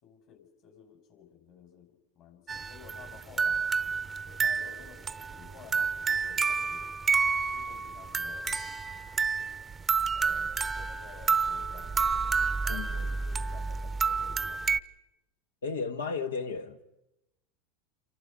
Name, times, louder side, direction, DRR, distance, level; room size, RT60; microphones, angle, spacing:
voice 1, 0.0-3.7 4.3-7.0 7.5-8.6 10.1-12.2 12.6-14.6, left 8 dB, 50° left, 5.7 m, -53 dB
sound 1, 2.5-14.8, right 5 dB, 20° right, 0.7 m, -30 dB
voice 2, 12.7-13.1 15.6-16.8, left 5 dB, 80° left, 1.5 m, -34 dB
28.0 x 25.0 x 5.2 m
hypercardioid pair, 85°, 0 cm